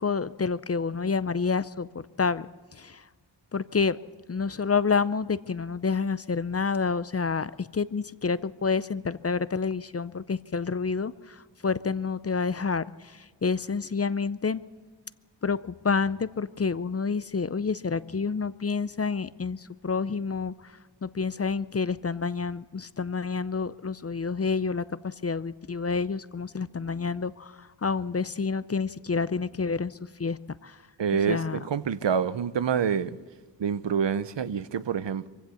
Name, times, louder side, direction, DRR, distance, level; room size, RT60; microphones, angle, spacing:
voice 1, 0.0-3.0 3.5-4.0 4.3-14.6 15.4-30.8 31.3-31.6, left 5 dB, 35° left, 0.5 m, -29 dB
voice 2, 31.0-33.2 33.6-35.3, right 7 dB, 75° right, 0.7 m, -27 dB
23.5 x 15.5 x 7.0 m
wide cardioid pair, 50°, 43 cm